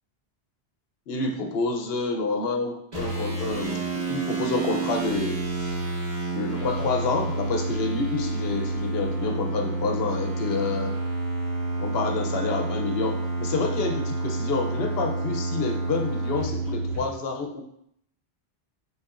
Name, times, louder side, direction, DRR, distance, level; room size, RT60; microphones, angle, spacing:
voice 1, 1.1-5.4 6.3-11.0 11.8-17.6, left 4 dB, 70° left, 3 dB, 0.8 m, -28 dB
sound 1, 2.9-17.0, right 2 dB, 40° right, 1.8 m, -29 dB
5.5 x 3.2 x 2.4 m, 0.71 s
omnidirectional pair, 1.1 m